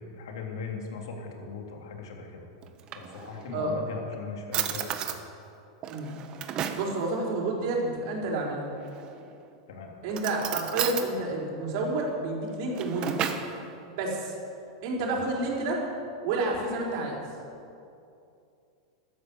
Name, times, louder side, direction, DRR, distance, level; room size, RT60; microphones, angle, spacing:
voice 1, 0.1-2.5 3.0-5.0 9.7-9.9, left 5 dB, 80° left, 1 dB, 3.3 m, -39 dB
Drawer open or close, 2.6-3.6 4.1-4.2 4.5-5.2 5.8-6.9 8.8-9.3 10.1-11.1 12.5-13.5, right 9 dB, 35° right, 1.3 m, -33 dB
voice 2, 6.7-8.6 10.0-13.2 14.0-14.3 14.8-15.8 16.2-17.2, right 2 dB, 55° right, -2 dB, 4.8 m, -29 dB
13.0 x 13.0 x 8.1 m, 2.6 s
supercardioid pair, 135°, 2 cm